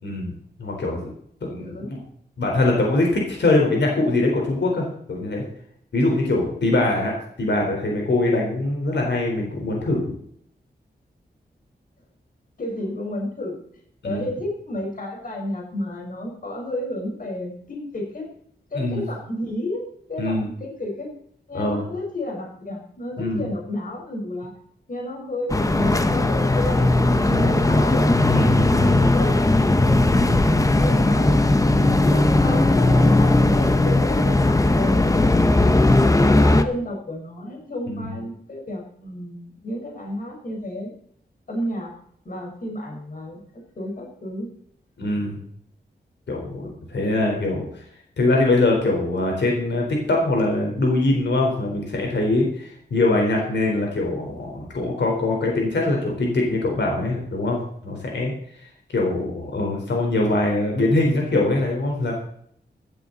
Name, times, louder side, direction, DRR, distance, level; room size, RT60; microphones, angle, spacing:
voice 1, 0.0-0.3 0.6-1.1 1.4-2.0 2.4-5.4 5.9-10.0 14.0-14.3 18.7-19.0 20.2-20.5 21.5-21.9 23.2-23.5 27.3-27.6 28.3-28.6 31.6-32.0 37.9-38.1 45.0-45.4 46.3-47.8 48.2-58.3 58.9-62.2, left 2 dB, 85° left, -1 dB, 4.3 m, -23 dB
voice 2, 12.6-13.6 14.0-18.3 18.7-21.1 21.5-24.5 24.9-28.1 28.5-31.4 31.9-35.4 36.2-40.9 41.5-41.9 42.2-43.4 43.7-44.5 58.9-59.3, left 1 dB, 50° left, 0 dB, 4.7 m, -31 dB
sound 1, 25.5-36.6, left 2 dB, 20° left, 0.9 m, -18 dB
16.0 x 12.5 x 4.1 m, 0.65 s
wide cardioid pair, 105°, 18 cm